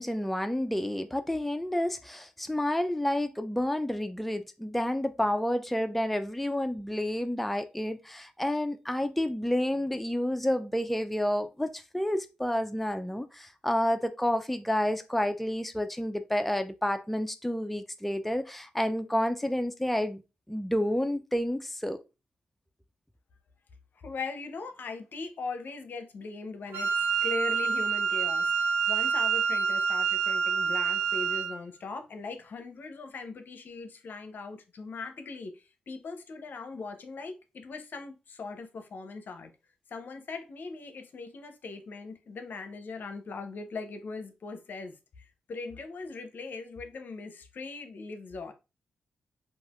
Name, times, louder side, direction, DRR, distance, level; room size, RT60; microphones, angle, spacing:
voice 1, 0.0-20.2 20.5-22.0, left 1 dB, 5° left, 0.3 m, -30 dB
voice 2, 24.0-39.5 39.9-48.5, left 4 dB, 60° left, 0.5 m, -40 dB
Wind instrument woodwind instrument, 26.7-31.6, right 5 dB, 70° right, 0.5 m, -27 dB
3.2 x 2.4 x 2.3 m
supercardioid pair, 40°, 4 cm